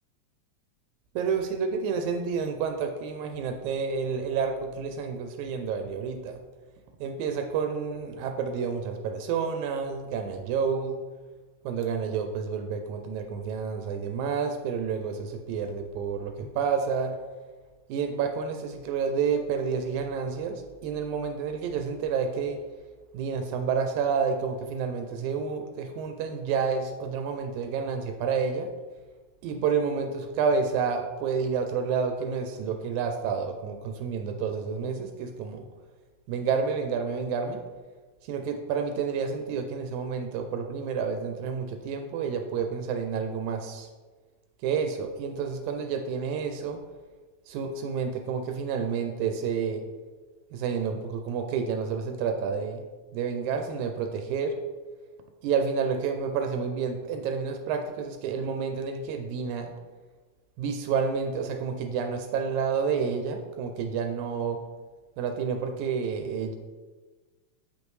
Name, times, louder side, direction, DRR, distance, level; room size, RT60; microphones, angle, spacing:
voice 1, 1.2-6.4 7.0-11.0 11.7-17.1 17.9-22.6 23.1-28.7 29.4-35.6 36.3-37.6 38.2-43.9 44.6-46.8 47.5-49.8 50.5-52.8 53.1-54.5 55.4-59.7 60.6-64.6 65.2-66.6, right 6 dB, 85° right, 5 dB, 1.9 m, -29 dB
7.0 x 5.2 x 3.2 m, 1.3 s
omnidirectional pair, 3.4 m